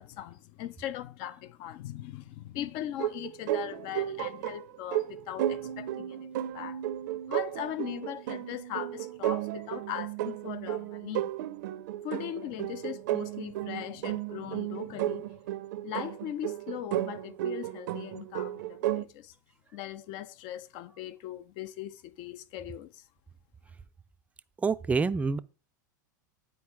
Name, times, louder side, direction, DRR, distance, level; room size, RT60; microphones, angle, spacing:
voice 1, 0.0-6.8 7.3-11.3 12.0-15.3 15.8-19.3 19.7-23.0, left 12 dB, 50° left, 0.7 m, -39 dB
sound 1, 3.0-19.1, right 13 dB, 65° right, 0.6 m, -34 dB
voice 2, 24.6-25.4, right 4 dB, 15° right, 0.4 m, -26 dB
9.4 x 4.4 x 4.7 m
hypercardioid pair, 110°, 10 cm